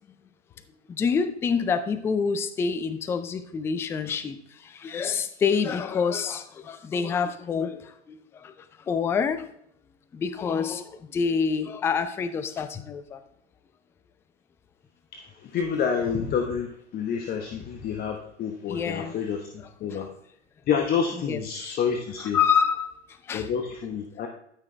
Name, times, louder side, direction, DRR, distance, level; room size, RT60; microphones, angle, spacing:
voice 1, 0.9-8.5 8.9-9.5 10.1-13.2 18.7-19.2 19.6-20.0 21.1-21.8 22.2-23.0 23.3-23.5, left 6 dB, 5° left, 12 dB, 0.3 m, -27 dB
voice 2, 15.1-19.5 19.8-20.1 20.7-22.4 23.3-24.3, left 7 dB, 25° left, 4 dB, 1.0 m, -28 dB
13.0 x 6.0 x 3.3 m, 0.73 s
hypercardioid pair, 110°, 36 cm